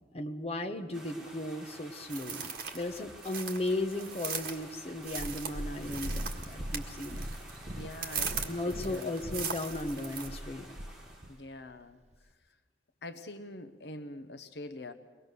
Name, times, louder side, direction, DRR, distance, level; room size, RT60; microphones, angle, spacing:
voice 1, 0.0-7.2 8.5-10.8, left 1 dB, 35° left, 3 dB, 1.1 m, -36 dB
sound 1, 0.9-11.4, right 1 dB, 5° right, 3.6 m, -51 dB
sound 2, 2.1-10.3, right 6 dB, 55° right, 1.8 m, -40 dB
Purr, 5.1-11.4 12.1-12.2, equal, 40° right, 0.8 m, -40 dB
voice 2, 7.7-8.6 8.9-9.1 11.3-12.0 13.0-14.9, left 1 dB, 60° left, 9 dB, 0.9 m, -44 dB
23.5 x 19.5 x 6.7 m, 1.3 s
head